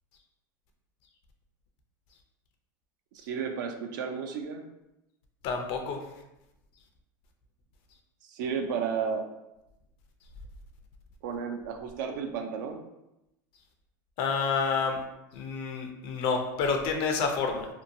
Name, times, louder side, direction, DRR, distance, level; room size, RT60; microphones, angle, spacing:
voice 1, 3.1-4.6 8.2-9.2 11.2-12.8, right 6 dB, 75° right, 4 dB, 0.4 m, -33 dB
voice 2, 5.4-6.0 14.2-15.0 15.3-17.7, left 5 dB, 55° left, 3 dB, 0.5 m, -29 dB
2.7 x 2.2 x 2.6 m, 0.91 s
supercardioid pair, 110°, 11 cm